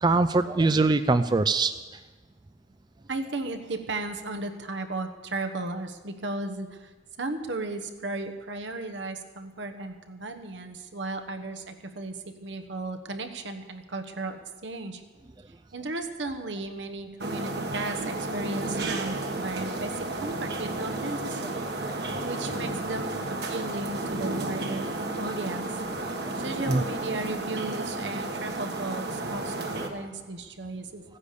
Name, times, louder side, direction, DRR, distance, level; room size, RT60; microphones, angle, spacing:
voice 1, 0.0-1.7 21.6-22.3 26.2-26.3 26.7-26.8, right 3 dB, 25° right, 11 dB, 0.3 m, -23 dB
voice 2, 3.1-6.9 7.2-15.0 15.7-24.9 25.2-25.8 26.3-31.0, right 2 dB, 80° right, 6 dB, 1.2 m, -35 dB
sound 1, 17.2-29.9, right 2 dB, 60° right, 1.5 m, -32 dB
15.5 x 9.9 x 6.8 m, 1.3 s
head